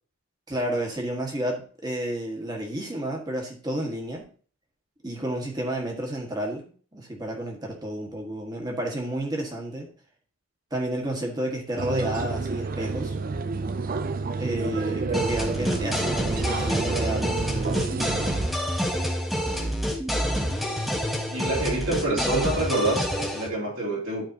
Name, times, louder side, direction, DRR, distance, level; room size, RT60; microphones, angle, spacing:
voice 1, 0.5-4.3 5.0-9.9 10.7-13.2 14.4-17.8, right 1 dB, 20° right, 0 dB, 1.6 m, -31 dB
sound 1, 11.8-18.5, right 4 dB, 40° right, 0.4 m, -30 dB
sound 2, 15.1-23.5, equal, ahead, 0.9 m, -28 dB
voice 2, 19.5-19.8 20.3-20.7 21.3-24.3, right 1 dB, 70° right, -3 dB, 3.1 m, -28 dB
12.0 x 4.7 x 2.9 m, 0.43 s
head